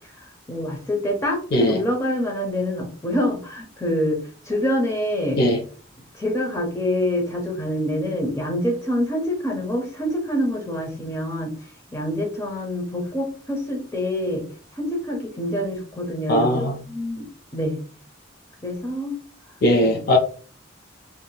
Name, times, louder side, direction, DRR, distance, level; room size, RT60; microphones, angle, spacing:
voice 1, 0.2-5.4 6.1-11.5 11.9-14.5 14.7-17.8 18.6-19.2 19.8-20.0, left 1 dB, 15° left, 0.7 m, -26 dB
voice 2, 16.3-16.8 19.6-20.2, equal, 50° left, 0.4 m, -19 dB
3.4 x 2.6 x 2.3 m
head